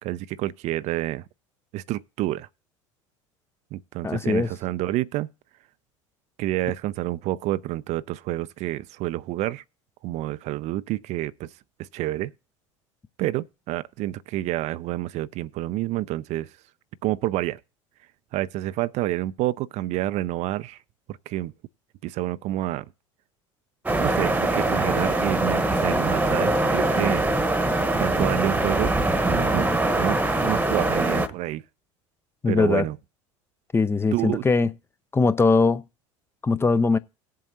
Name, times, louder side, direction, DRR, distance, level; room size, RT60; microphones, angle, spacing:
voice 1, 0.0-1.2 1.7-2.5 3.7-5.3 6.4-9.6 10.0-11.5 11.9-12.3 13.2-16.5 17.0-17.6 18.3-20.8 21.1-21.5 22.0-22.9 24.0-27.2 27.9-28.9 29.3-29.7 30.0-31.6 32.5-33.0 34.1-34.5, right 15 dB, 45° right, 0.4 m, -28 dB
voice 2, 4.0-4.5 32.4-32.9 33.7-34.7 35.1-35.8 36.4-37.0, left 3 dB, 15° left, 0.5 m, -21 dB
sound 1, 23.9-31.3, right 2 dB, 10° right, 1.1 m, -23 dB
18.5 x 7.5 x 2.8 m
figure-of-eight pair, 70°, 16 cm